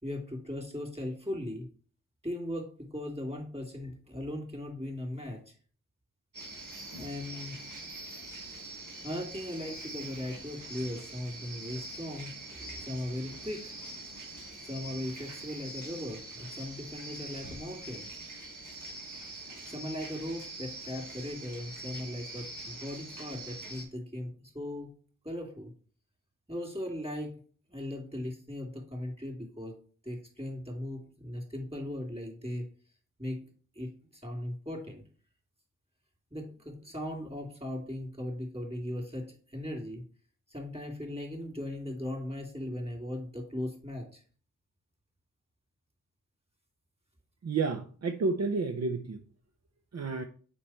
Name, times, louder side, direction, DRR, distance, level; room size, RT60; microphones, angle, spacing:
voice 1, 0.0-1.7 2.2-5.6 7.0-7.6 9.0-13.7 14.6-18.1 19.4-24.9 25.2-25.7 26.5-27.3 27.7-29.8 30.0-32.7 33.2-33.5 33.7-35.0 36.3-40.0 40.5-44.2, left 1 dB, 20° right, 1 dB, 3.1 m, -38 dB
sound 1, 6.3-23.8, right 2 dB, 80° right, 2.4 m, -44 dB
voice 2, 47.4-49.2 49.9-50.2, right 4 dB, 60° right, 7 dB, 0.7 m, -30 dB
6.7 x 5.4 x 4.4 m, 0.43 s
cardioid pair, 55°, 30 cm